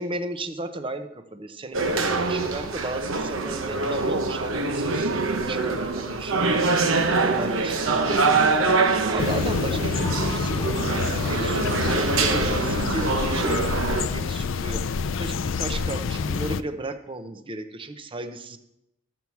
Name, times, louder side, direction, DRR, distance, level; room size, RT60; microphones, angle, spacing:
voice 1, 0.0-6.9 7.1-8.7 9.1-13.6 14.1-18.6, right 2 dB, 25° right, 9 dB, 0.7 m, -34 dB
sound 1, 1.7-14.1, right 3 dB, 80° right, 0.9 m, -24 dB
sound 2, 9.2-16.6, left 5 dB, 70° left, 0.4 m, -27 dB
13.5 x 4.7 x 7.0 m, 0.87 s
head